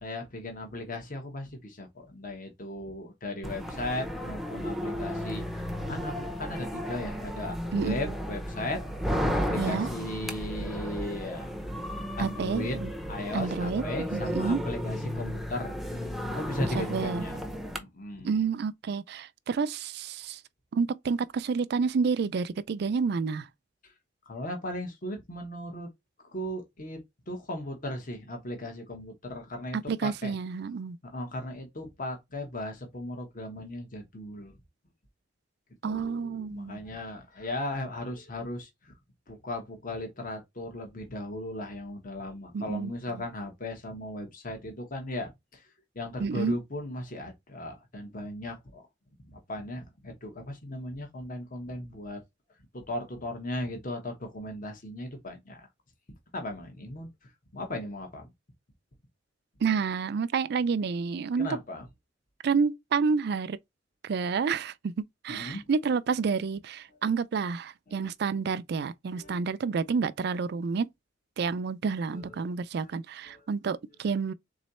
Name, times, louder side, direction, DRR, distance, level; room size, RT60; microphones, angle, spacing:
voice 1, 0.0-5.4 5.9-8.8 9.3-11.5 12.2-12.8 13.1-15.7 16.3-17.4 17.8-18.4 24.3-25.9 26.3-27.0 27.3-30.4 31.1-34.6 35.8-38.9 39.3-45.6 45.9-48.8 49.2-52.2 52.7-55.7 56.3-57.1 57.5-58.3 61.4-61.9 65.3-65.6 67.9-68.1 69.1-69.4 72.1-72.4 73.3-73.4, left 1 dB, 45° left, 1.2 m, -37 dB
sound 1, 3.4-17.8, equal, ahead, 0.6 m, -33 dB
voice 2, 7.7-8.1 9.6-9.9 12.2-12.9 13.3-13.8 14.1-14.6 16.7-17.2 18.2-20.4 20.7-23.5 29.9-31.0 35.8-36.8 42.5-43.2 46.2-46.6 59.6-61.6 62.4-63.6 64.0-64.9 65.2-70.9 71.4-74.3, right 5 dB, 60° right, 0.4 m, -29 dB
3.8 x 3.1 x 4.1 m
head